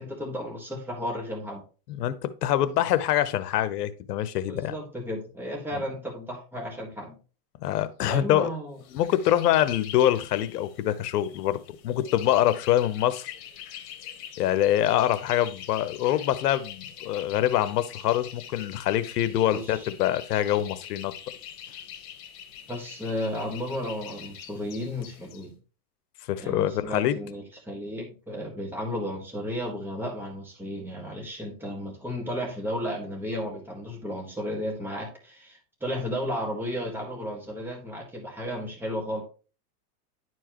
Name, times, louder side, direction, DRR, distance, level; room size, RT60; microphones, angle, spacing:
voice 1, 0.0-1.6 4.5-7.2 8.1-8.8 19.5-19.9 22.7-25.5 26.4-39.2, equal, 5° right, 1.8 m, -33 dB
voice 2, 1.9-4.7 7.6-8.5 8.9-13.3 14.4-21.1 26.3-27.2, left 12 dB, 80° left, 1.0 m, -25 dB
sound 1, 8.8-25.4, left 10 dB, 65° left, 1.6 m, -44 dB
11.0 x 4.6 x 3.0 m
supercardioid pair, 145°, 47 cm